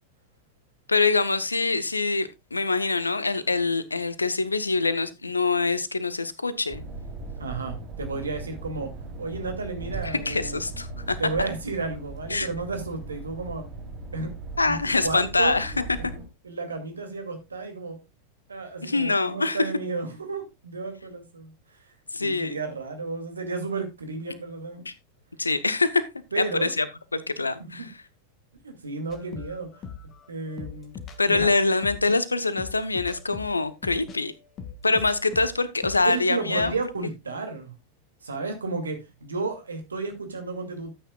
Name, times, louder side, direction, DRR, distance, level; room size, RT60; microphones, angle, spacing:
voice 1, 0.9-6.8 10.0-11.2 12.3-12.5 14.6-15.7 18.8-19.6 22.1-22.6 24.9-25.0 25.4-26.0 26.4-26.8 27.1-27.9 31.2-34.3 34.8-36.7, left 3 dB, 80° left, 0.9 m, -24 dB
sound 1, 6.7-16.3, right 2 dB, 30° right, 3.1 m, -38 dB
voice 2, 7.4-8.9 9.2-10.6 11.2-13.6 14.1-14.3 14.6-14.8 15.0-16.2 16.4-18.0 18.5-21.9 22.2-24.9 26.3-26.7 27.7-27.9 28.6-29.8 30.3-31.0 31.3-31.5 36.0-37.7 38.2-40.9, right 3 dB, 75° right, 2.4 m, -32 dB
sound 2, 29.1-36.2 36.5-37.0, left 6 dB, 30° left, 1.8 m, -40 dB
13.5 x 8.7 x 2.3 m
figure-of-eight pair, 90°, 0 cm